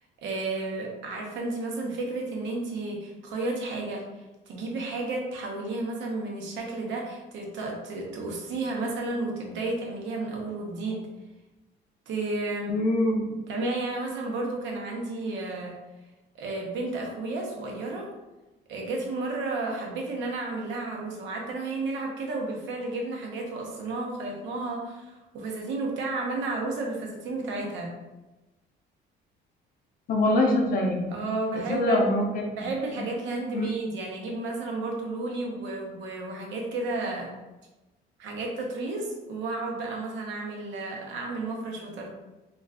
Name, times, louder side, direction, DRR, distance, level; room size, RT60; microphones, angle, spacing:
voice 1, 0.2-4.0 4.5-11.1 12.1-12.7 13.5-15.8 16.3-18.1 18.7-27.9 31.1-32.1 32.6-37.3 38.2-42.1, right 2 dB, 75° right, 0 dB, 0.8 m, -32 dB
voice 2, 12.7-13.4 30.1-31.3 31.5-32.4 33.5-33.7, left 1 dB, 50° left, 1 dB, 0.5 m, -24 dB
2.4 x 2.3 x 3.3 m, 1.1 s
cardioid pair, 120°, 19 cm